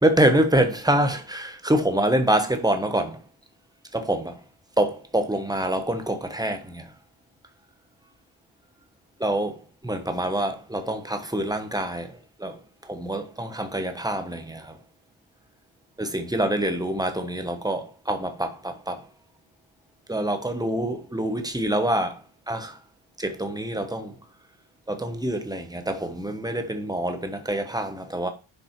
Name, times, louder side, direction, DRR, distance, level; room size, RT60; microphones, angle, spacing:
voice 1, 0.0-3.2 3.9-4.4 4.8-6.9 9.2-14.8 16.0-19.1 20.1-22.2 22.5-22.8 23.2-24.1 24.9-28.3, right 1 dB, 10° right, 1.0 m, -26 dB
10.5 x 3.7 x 4.5 m
wide cardioid pair, 130°, 49 cm